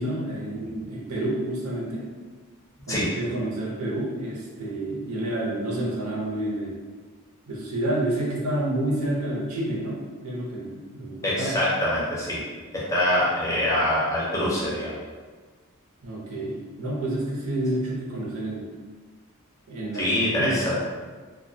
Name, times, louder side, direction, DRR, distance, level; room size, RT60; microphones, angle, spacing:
voice 1, 0.0-2.1 2.9-6.8 7.5-11.6 16.0-18.7 19.7-20.6, right 1 dB, 85° right, -4 dB, 0.7 m, -29 dB
voice 2, 11.2-12.4 12.7-14.9 19.9-20.8, left 1 dB, 15° left, -7 dB, 0.5 m, -24 dB
2.2 x 2.2 x 2.6 m, 1.4 s
head